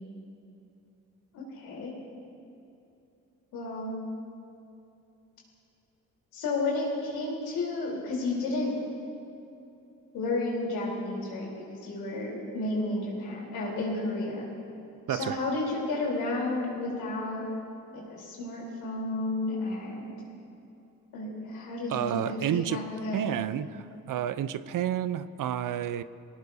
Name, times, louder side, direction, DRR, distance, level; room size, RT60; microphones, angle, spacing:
voice 1, 1.3-1.9 3.5-4.0 6.3-8.7 10.1-14.5 15.1-17.4 17.9-20.2 21.1-23.4, left 2 dB, 90° left, -3 dB, 3.8 m, -32 dB
voice 2, 15.1-15.4 21.9-22.8 23.1-26.0, right 10 dB, 60° right, 14 dB, 0.6 m, -30 dB
22.5 x 18.0 x 2.8 m, 2.7 s
supercardioid pair, 60°, 36 cm